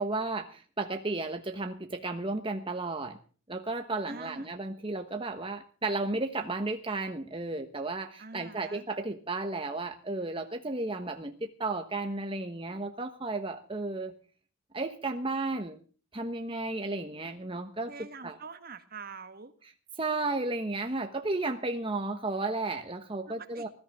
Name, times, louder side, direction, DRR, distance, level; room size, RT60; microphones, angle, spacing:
voice 1, 0.0-3.2 3.5-14.1 14.7-15.8 16.1-17.9 18.2-18.4 20.0-23.7, right 2 dB, 25° right, 6 dB, 1.2 m, -33 dB
voice 2, 4.1-4.5 8.2-8.9 17.9-19.5 23.3-23.7, right 4 dB, 45° right, 10 dB, 1.6 m, -45 dB
20.5 x 13.5 x 3.7 m, 0.40 s
head